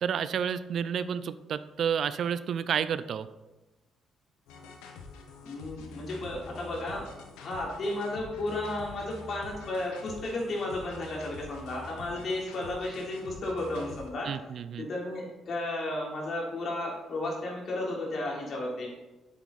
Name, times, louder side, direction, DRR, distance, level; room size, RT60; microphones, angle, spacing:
voice 1, 0.0-3.3 14.2-14.9, right 8 dB, 65° right, 14 dB, 0.5 m, -30 dB
sound 1, 4.5-14.1, left 3 dB, 90° left, 1.2 m, -46 dB
voice 2, 5.4-7.0 7.4-14.3 14.8-18.9, left 2 dB, 60° left, -2 dB, 3.4 m, -33 dB
8.6 x 7.4 x 4.1 m, 1.1 s
supercardioid pair, 65°, 0 cm